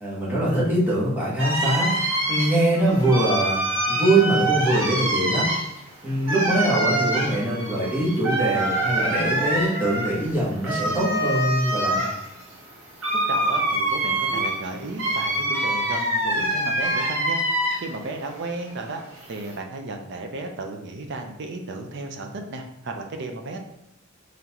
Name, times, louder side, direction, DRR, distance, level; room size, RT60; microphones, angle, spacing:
voice 1, 0.0-5.5 6.0-12.0, right 1 dB, 10° right, -7 dB, 1.2 m, -23 dB
sound 1, 1.4-18.0 18.4-19.5, right 1 dB, 80° right, 1.1 m, -25 dB
voice 2, 13.1-17.4 17.8-19.0 19.3-23.6, right 2 dB, 60° right, 4 dB, 0.5 m, -34 dB
3.8 x 3.2 x 2.9 m, 0.79 s
head